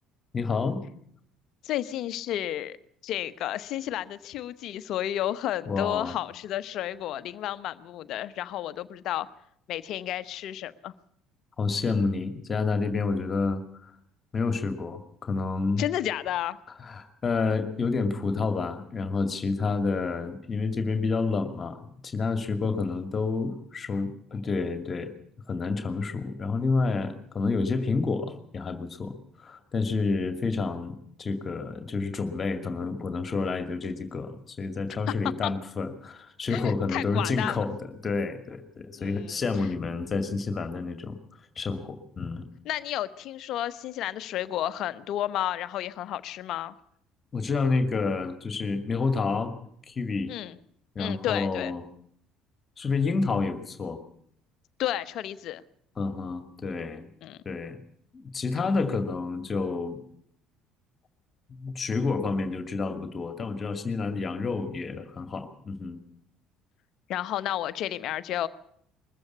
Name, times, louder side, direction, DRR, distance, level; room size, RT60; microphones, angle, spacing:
voice 1, 0.3-0.8 5.7-6.1 11.6-13.9 14.3-15.8 16.8-25.1 25.5-37.8 38.0-41.2 41.6-42.5 47.3-49.5 49.9-50.3 51.0-51.8 52.8-54.0 56.0-57.1 57.5-57.8 58.1-60.0 61.5-66.0, left 4 dB, 35° left, 9 dB, 2.2 m, -29 dB
voice 2, 1.6-2.8 3.0-9.3 9.7-10.9 15.8-16.6 35.4-35.5 36.5-37.6 39.0-39.4 42.6-46.7 50.3-50.6 51.0-51.7 54.8-55.6 57.2-57.4 67.1-68.5, left 12 dB, 60° left, 15 dB, 1.0 m, -32 dB
21.5 x 14.5 x 8.5 m, 0.69 s
hypercardioid pair, 60°, 0 cm